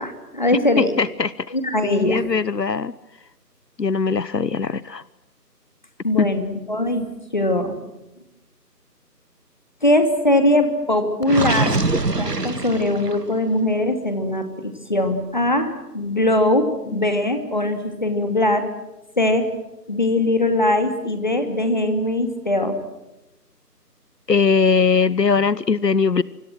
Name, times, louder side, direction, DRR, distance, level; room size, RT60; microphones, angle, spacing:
voice 1, 0.0-0.9 1.5-2.2 6.0-7.1 7.3-7.8 9.8-11.8 12.1-18.7 19.2-19.5 19.9-22.8, left 1 dB, 30° left, 7 dB, 2.6 m, -21 dB
voice 2, 0.8-1.5 1.8-2.9 3.8-5.0 6.2-6.3 16.9-17.0 24.3-26.2, left 5 dB, 80° left, 19 dB, 1.1 m, -20 dB
Gurgling, 11.2-13.4, right 3 dB, 70° right, 1.9 m, -24 dB
28.0 x 26.0 x 6.3 m, 0.96 s
figure-of-eight pair, 175°, 49 cm